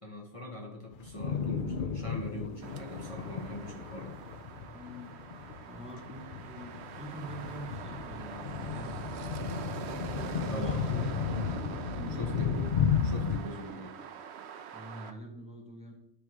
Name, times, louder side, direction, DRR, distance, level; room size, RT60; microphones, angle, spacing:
voice 1, 0.0-4.2 10.5-10.9 12.1-12.7 13.0-13.9, left 1 dB, 30° left, -1 dB, 1.2 m, -41 dB
sound 1, 0.9-13.4, left 7 dB, 55° left, 0.7 m, -34 dB
sound 2, 2.6-15.1, right 7 dB, 75° right, 0.9 m, -44 dB
voice 2, 4.7-5.2 5.7-9.1 9.8-11.1 11.6-12.4 14.7-15.9, equal, 5° right, 1 dB, 1.2 m, -46 dB
10.5 x 3.6 x 6.2 m, 0.77 s
omnidirectional pair, 1.1 m